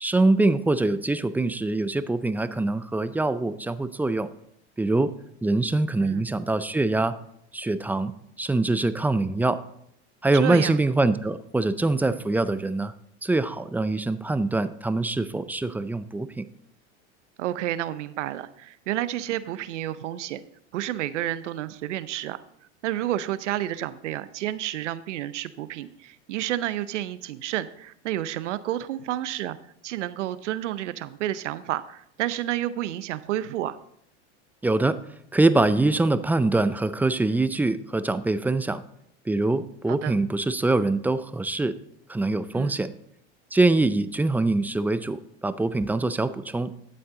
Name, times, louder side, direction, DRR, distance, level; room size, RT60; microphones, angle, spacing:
voice 1, 0.0-4.3 4.8-5.1 5.4-7.1 7.5-8.1 8.4-9.6 10.2-12.9 13.2-16.5 34.6-35.0 35.3-38.8 39.3-41.8 42.1-42.9 43.5-46.7, right 2 dB, 5° right, 13 dB, 0.4 m, -24 dB
voice 2, 10.3-10.8 17.4-20.4 20.7-22.4 22.8-29.6 29.8-33.8 39.9-40.2 42.5-42.8, right 13 dB, 85° right, 15 dB, 0.7 m, -30 dB
12.0 x 7.8 x 3.7 m, 0.73 s
hypercardioid pair, 100°, 35 cm